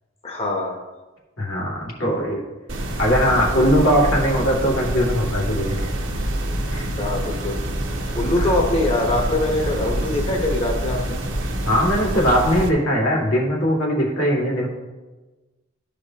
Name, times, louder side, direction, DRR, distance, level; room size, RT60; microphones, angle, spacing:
voice 1, 0.2-0.8 7.0-7.6 8.1-11.2, left 2 dB, 30° left, -1 dB, 1.0 m, -23 dB
voice 2, 1.4-2.4 3.0-5.9 6.7-6.9 8.4-8.5 11.6-14.7, equal, 85° left, -3 dB, 2.3 m, -20 dB
sound 1, 2.7-12.7, right 1 dB, 60° right, 1.0 m, -26 dB
13.5 x 5.0 x 2.9 m, 1.2 s
head